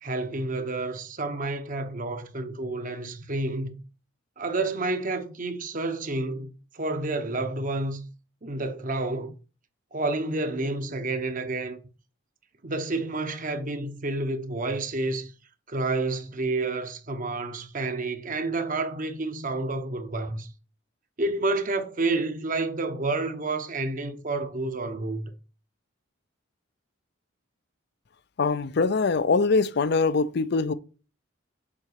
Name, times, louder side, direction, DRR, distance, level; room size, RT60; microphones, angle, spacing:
voice 1, 0.0-3.8 4.4-8.0 8.4-9.3 9.9-11.8 12.6-15.3 15.7-20.5 21.2-25.3, right 2 dB, 45° right, 1.0 m, -29 dB
voice 2, 28.4-30.7, left 4 dB, 60° left, 0.5 m, -23 dB
7.4 x 4.0 x 6.6 m
head